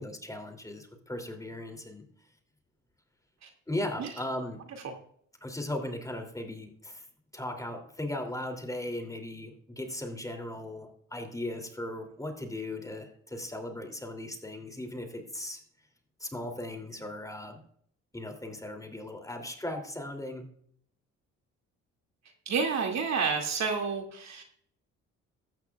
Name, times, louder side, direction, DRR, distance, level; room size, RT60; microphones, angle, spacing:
voice 1, 0.0-2.0 3.7-4.6 5.4-7.0 7.3-15.6 16.2-17.6 18.1-20.4, left 1 dB, 10° left, 4 dB, 2.8 m, -37 dB
voice 2, 22.5-24.4, right 5 dB, 60° right, 3 dB, 2.4 m, -30 dB
15.0 x 13.0 x 2.4 m, 0.65 s
cardioid pair, 90°, 30 cm